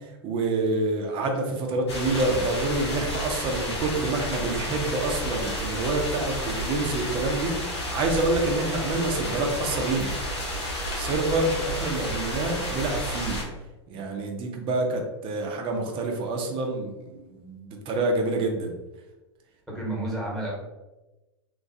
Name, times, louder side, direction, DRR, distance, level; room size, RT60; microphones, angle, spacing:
voice 1, 0.2-7.6 7.9-10.1 10.9-13.4 13.9-18.7, right 2 dB, 40° right, 2 dB, 0.6 m, -27 dB
sound 1, 1.9-13.4, equal, 90° left, 1.2 m, -31 dB
voice 2, 19.7-20.5, right 1 dB, ahead, -5 dB, 1.2 m, -30 dB
2.9 x 2.4 x 2.6 m, 1.1 s
hypercardioid pair, 105°, 14 cm